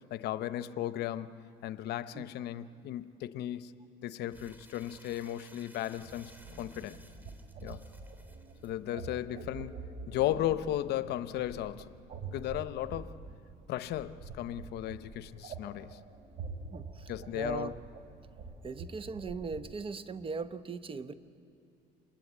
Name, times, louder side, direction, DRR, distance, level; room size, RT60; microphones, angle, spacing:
voice 1, 0.1-1.3 1.6-3.7 4.0-6.3 6.6-7.0 7.6-7.8 8.6-9.8 10.1-11.9 12.3-13.2 13.7-16.0 17.1-17.8, left 12 dB, 75° left, 0.7 m, -35 dB
Crumpling crinkling, 4.3-8.7, right 1 dB, 10° right, 3.0 m, -58 dB
sound 1, 5.9-19.7, right 4 dB, 55° right, 2.8 m, -47 dB
sound 2, 6.5-10.8, left 3 dB, 45° left, 1.5 m, -65 dB
voice 2, 16.7-17.1 17.3-17.7 18.6-21.1, right 5 dB, 30° right, 0.9 m, -39 dB
26.5 x 21.0 x 8.7 m
cardioid pair, 110°, 17 cm